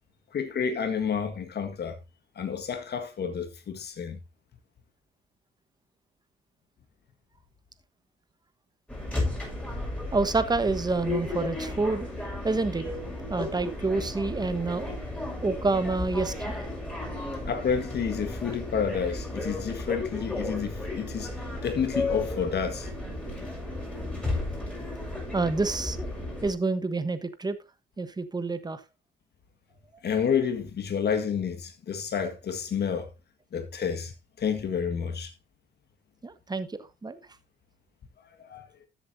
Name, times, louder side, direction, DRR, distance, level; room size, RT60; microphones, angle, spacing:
voice 1, 0.3-2.0 2.4-4.2 17.5-21.3 21.6-22.9 30.0-33.1 33.5-34.1 34.4-35.3 38.4-38.7, left 7 dB, 55° left, 1.8 m, -29 dB
sound 1, 8.9-26.5, left 2 dB, 5° left, 5.8 m, -34 dB
voice 2, 10.1-12.1 12.4-12.9 13.3-14.9 15.4-16.6 25.3-26.1 26.4-27.6 28.0-28.8 36.2-37.2, right 3 dB, 20° right, 1.3 m, -28 dB
13.5 x 7.9 x 2.8 m
cardioid pair, 90°, 20 cm